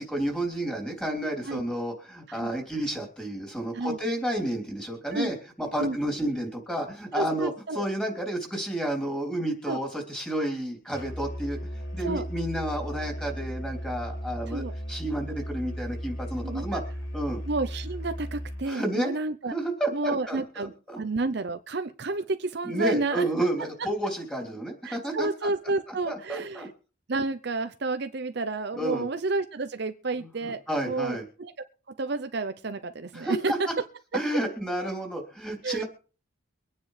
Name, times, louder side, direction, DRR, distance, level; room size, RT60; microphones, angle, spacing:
voice 1, 0.0-11.6 11.9-14.6 14.9-16.8 17.1-17.4 18.7-19.1 19.5-21.0 22.6-25.5 26.1-26.7 28.7-29.1 30.2-31.2 33.1-33.7 34.1-35.8, right 1 dB, 5° left, 1 dB, 3.4 m, -31 dB
voice 2, 7.1-7.8 9.7-9.8 12.0-12.2 14.5-14.7 16.4-16.8 17.5-19.5 19.9-23.2 24.8-26.7 27.1-31.5 32.0-33.5 35.6-35.8, right 3 dB, 55° right, 9 dB, 0.6 m, -30 dB
Musical instrument, 10.9-18.7, equal, 70° left, 3.0 m, -36 dB
24.5 x 9.7 x 3.3 m, 0.38 s
head